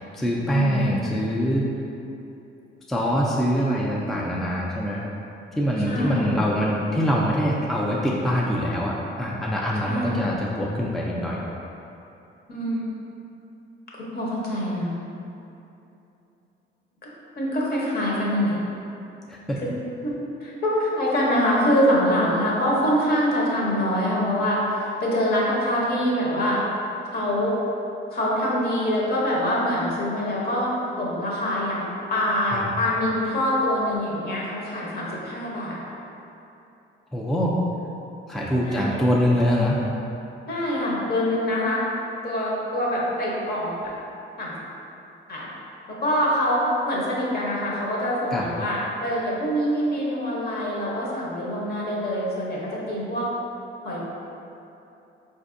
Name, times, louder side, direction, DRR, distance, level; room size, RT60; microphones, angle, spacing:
voice 1, 0.0-1.7 2.9-5.0 5.6-11.5 19.3-19.6 32.5-32.7 37.1-37.5 38.3-39.8 48.3-48.5, equal, ahead, -4 dB, 0.3 m, -24 dB
voice 2, 0.5-0.9 5.9-6.4 9.9-10.4 12.5-12.9 14.1-15.0 17.4-18.6 19.6-19.7 20.0-26.6 27.1-27.6 28.1-35.8 38.6-39.0 40.5-41.8 42.2-43.9 44.4-44.5 45.3-45.5 45.9-53.3 53.8-54.0, equal, 50° left, -5 dB, 0.9 m, -24 dB
4.1 x 2.6 x 2.5 m, 2.9 s
cardioid pair, 95°, 21 cm